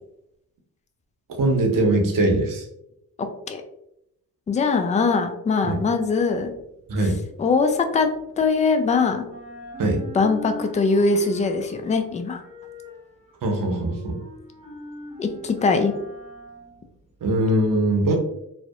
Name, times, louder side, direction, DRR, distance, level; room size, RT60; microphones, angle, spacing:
voice 1, 1.4-2.7 5.6-5.8 6.9-7.2 9.8-10.0 13.4-14.2 17.2-18.1, right 1 dB, 50° right, 2 dB, 0.8 m, -21 dB
voice 2, 3.2-3.6 4.5-6.5 7.4-8.1 8.4-9.3 10.1-12.4 15.2-15.9, left 4 dB, 20° left, 6 dB, 0.3 m, -21 dB
sound 1, 6.1-8.9 9.2-17.3, equal, 15° right, 1.0 m, -42 dB
2.6 x 2.0 x 2.4 m, 0.80 s
hypercardioid pair, 40°, 43 cm